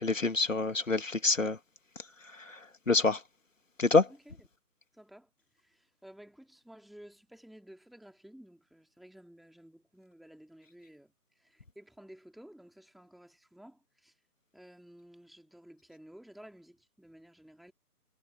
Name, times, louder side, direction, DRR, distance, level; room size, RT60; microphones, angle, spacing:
voice 1, 0.0-1.6 2.5-2.6 2.9-3.2 3.8-4.1, left 3 dB, 50° left, 2.5 m, -26 dB
voice 2, 4.0-4.5 4.9-14.2 14.5-17.7, equal, ahead, 3.2 m, -54 dB
figure-of-eight pair, 160°, 48 cm